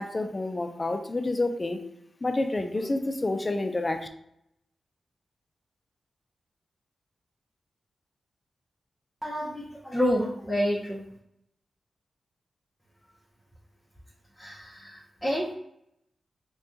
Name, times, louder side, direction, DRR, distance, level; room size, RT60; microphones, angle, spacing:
voice 1, 0.0-1.8 2.2-4.1, left 2 dB, 30° left, 6 dB, 0.4 m, -29 dB
voice 2, 9.2-11.0 14.4-15.5, equal, ahead, -4 dB, 0.7 m, -29 dB
2.6 x 2.3 x 3.7 m, 0.75 s
cardioid pair, 55°, 0 cm